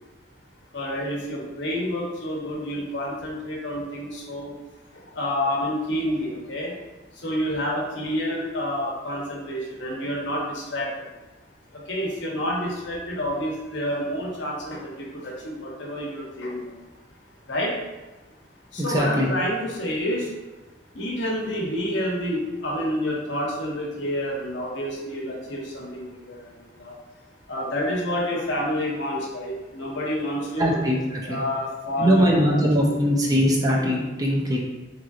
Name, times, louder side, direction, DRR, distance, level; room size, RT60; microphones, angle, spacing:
voice 1, 0.7-4.5 5.2-6.7 7.2-10.9 11.9-16.7 17.5-17.7 18.7-20.2 20.9-26.4 26.8-26.9 27.5-30.8 31.3-32.6, equal, 75° left, -3 dB, 0.9 m, -28 dB
voice 2, 18.8-19.3 30.6-31.4 32.0-34.6, equal, 20° right, -1 dB, 0.4 m, -21 dB
3.7 x 3.0 x 2.5 m, 1.1 s
head